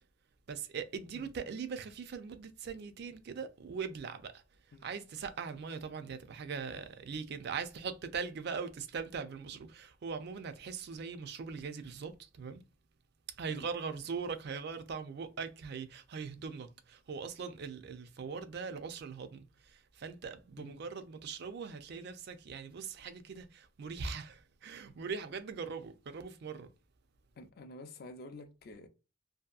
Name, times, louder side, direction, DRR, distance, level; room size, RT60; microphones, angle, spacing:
voice 1, 0.5-4.4 4.8-12.6 13.4-26.7, right 5 dB, 50° right, 0.4 m, -41 dB
voice 2, 27.4-28.9, left 2 dB, 45° left, 0.4 m, -49 dB
2.7 x 2.5 x 2.3 m
head